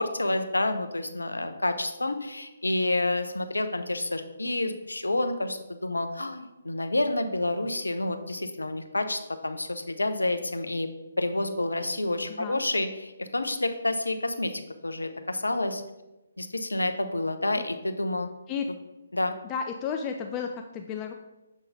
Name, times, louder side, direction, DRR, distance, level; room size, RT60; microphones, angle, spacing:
voice 1, 0.0-10.9 11.2-15.8 16.4-18.3 19.1-19.4, left 2 dB, 75° left, 8 dB, 0.6 m, -29 dB
voice 2, 12.3-12.6 17.6-17.7 18.5-18.7 19.4-21.1, left 6 dB, 20° left, 4 dB, 0.3 m, -33 dB
7.1 x 3.8 x 3.8 m, 1.0 s
figure-of-eight pair, 140°, 0 cm